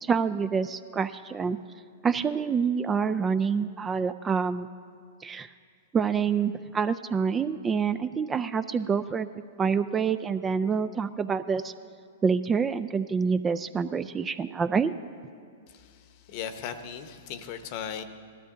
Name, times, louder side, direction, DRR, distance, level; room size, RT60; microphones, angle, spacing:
voice 1, 0.0-1.6 2.0-4.7 5.2-5.5 5.9-9.3 9.6-11.7 12.2-14.9, right 6 dB, 20° right, 12 dB, 0.3 m, -27 dB
voice 2, 15.7-18.0, left 8 dB, 50° left, 10 dB, 0.9 m, -38 dB
18.5 x 13.0 x 3.7 m, 2.2 s
hypercardioid pair, 125°, 0 cm